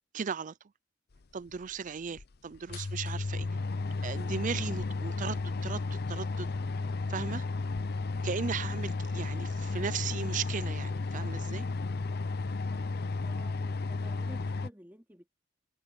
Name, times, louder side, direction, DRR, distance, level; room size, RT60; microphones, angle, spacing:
voice 1, 0.1-0.6 1.3-3.5 4.0-6.5 7.1-7.4 8.2-11.7, right 6 dB, 40° right, 0.5 m, -37 dB
sound 1, 1.5-1.6 2.2-2.3 2.5-14.7, left 3 dB, 55° left, 0.7 m, -33 dB
voice 2, 12.7-15.3, equal, 10° right, 3.0 m, -52 dB
head